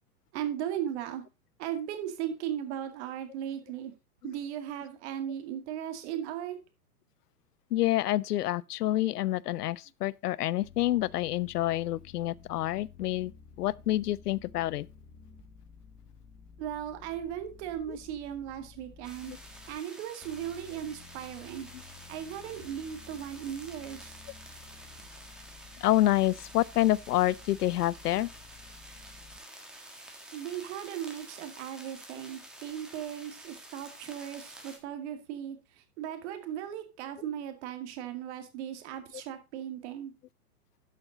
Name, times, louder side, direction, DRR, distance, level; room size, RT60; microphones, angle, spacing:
voice 1, 0.3-1.2 1.6-3.9 4.2-6.6 16.6-19.3 19.7-21.7 22.1-24.2 30.3-35.6 36.0-40.1, right 10 dB, 45° right, 2.1 m, -37 dB
voice 2, 7.7-13.3 13.6-14.9 17.9-18.0 19.3-19.4 25.8-28.3, left 15 dB, 80° left, 0.6 m, -28 dB
sound 1, 10.6-19.8 20.2-29.4, left 6 dB, 15° left, 1.1 m, -53 dB
sound 2, 19.0-34.8, right 1 dB, ahead, 1.5 m, -50 dB
12.0 x 5.7 x 3.8 m
hypercardioid pair, 135°, 47 cm